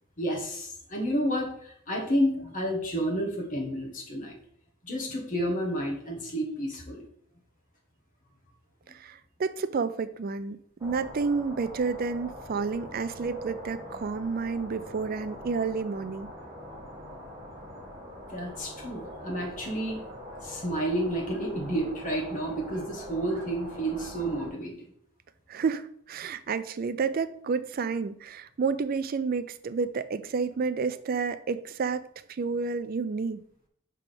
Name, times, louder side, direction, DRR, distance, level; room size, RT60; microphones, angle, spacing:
voice 1, 0.2-4.3 4.8-7.0 18.3-20.0 20.4-24.9, right 1 dB, 40° left, 1.3 m, -30 dB
voice 2, 8.9-16.3 25.5-33.4, right 5 dB, 45° right, 0.4 m, -30 dB
sound 1, 10.8-24.5, equal, 15° right, 1.5 m, -43 dB
5.7 x 3.5 x 5.9 m
head